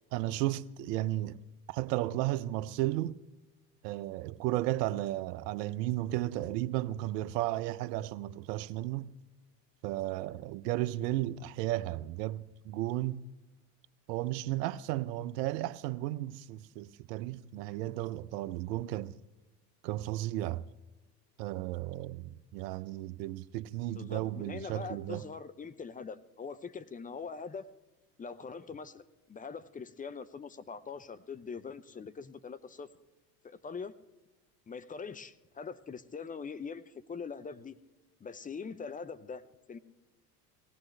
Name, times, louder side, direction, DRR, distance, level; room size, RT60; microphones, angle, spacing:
voice 1, 0.1-1.4 1.7-3.2 3.8-9.1 9.8-13.2 14.1-19.2 19.8-20.6 21.4-25.2, right 15 dB, 75° right, 0.7 m, -34 dB
voice 2, 23.9-27.7 28.2-32.9 33.4-34.0 34.7-37.8 38.2-39.8, left 5 dB, 15° left, 0.6 m, -43 dB
18.5 x 16.5 x 3.2 m
hypercardioid pair, 80°, 49 cm